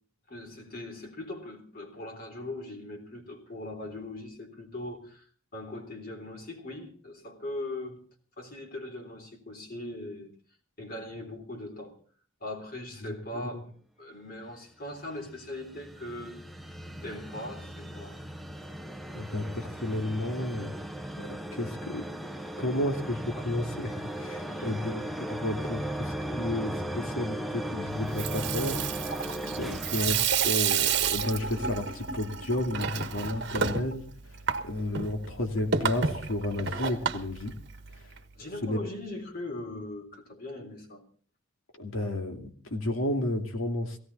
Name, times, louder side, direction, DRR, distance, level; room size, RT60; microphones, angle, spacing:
voice 1, 0.3-5.2 5.5-8.0 8.4-10.3 10.8-12.0 12.4-16.4 17.0-18.2 24.5-24.9 38.3-41.0, left 1 dB, 45° left, 3 dB, 3.7 m, -40 dB
sound 1, 14.9-31.1, right 1 dB, ahead, 0.9 m, -37 dB
voice 2, 19.1-20.7 21.2-22.0 22.6-29.2 29.5-34.0 34.6-37.6 38.6-38.8 41.8-44.0, left 1 dB, 80° left, 5 dB, 2.5 m, -32 dB
Water tap faucet / Sink (filling or washing), 28.0-38.2, right 6 dB, 55° right, 1.4 m, -31 dB
17.5 x 17.0 x 4.2 m, 0.43 s
head